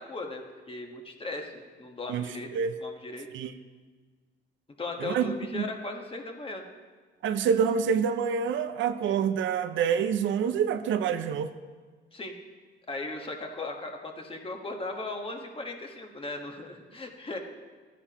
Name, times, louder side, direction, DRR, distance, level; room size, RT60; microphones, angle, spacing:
voice 1, 0.0-2.5 2.8-3.3 4.8-6.6 12.1-12.3 12.9-17.4, left 2 dB, 25° left, 3 dB, 1.4 m, -37 dB
voice 2, 7.2-11.5, right 7 dB, 70° right, 10 dB, 0.6 m, -27 dB
13.0 x 10.0 x 3.0 m, 1.4 s
cardioid pair, 90°, 20 cm